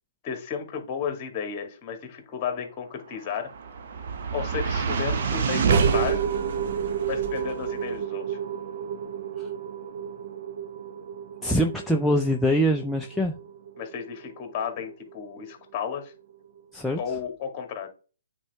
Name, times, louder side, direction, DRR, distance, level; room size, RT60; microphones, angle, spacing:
voice 1, 0.2-3.5 4.3-6.2 7.1-8.4 13.8-16.1 17.0-17.9, left 7 dB, 30° left, 2.0 m, -33 dB
sound 1, 3.1-15.5, right 6 dB, 50° right, 1.2 m, -29 dB
voice 2, 11.4-13.4 16.7-17.0, equal, ahead, 0.5 m, -23 dB
8.8 x 4.4 x 3.5 m
hypercardioid pair, 140°, 0 cm